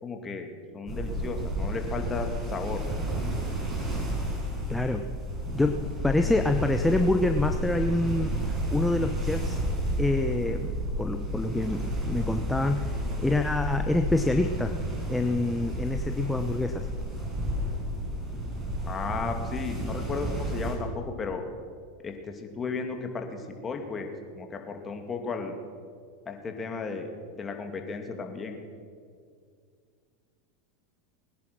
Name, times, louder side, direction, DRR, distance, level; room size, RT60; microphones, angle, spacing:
voice 1, 0.0-0.5 0.7-2.8 18.9-21.4 22.0-25.6 26.3-27.1 27.4-28.6, left 4 dB, 25° left, 4 dB, 2.5 m, -34 dB
sound 1, 0.9-20.8, right 1 dB, 25° right, 5.4 m, -31 dB
voice 2, 4.7-5.0 5.5-8.4 8.7-9.6 10.0-14.7 15.1-16.9, left 2 dB, 10° left, 6 dB, 0.8 m, -26 dB
21.0 x 10.5 x 6.2 m, 2.1 s
hypercardioid pair, 90°, 0 cm